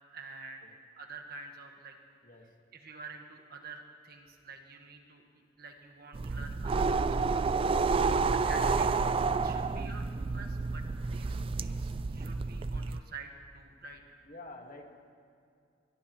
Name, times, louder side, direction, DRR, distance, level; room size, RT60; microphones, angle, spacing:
voice 1, 0.1-2.0 2.7-5.2 5.6-7.4 7.8-14.2, right 3 dB, 55° right, 4 dB, 1.5 m, -48 dB
voice 2, 2.2-2.5 8.0-8.5 14.2-15.1, left 2 dB, 45° left, 2 dB, 1.7 m, -50 dB
sound 1, 6.1-13.0, right 4 dB, 30° right, 0.3 m, -30 dB
21.5 x 21.0 x 3.1 m, 2.4 s
head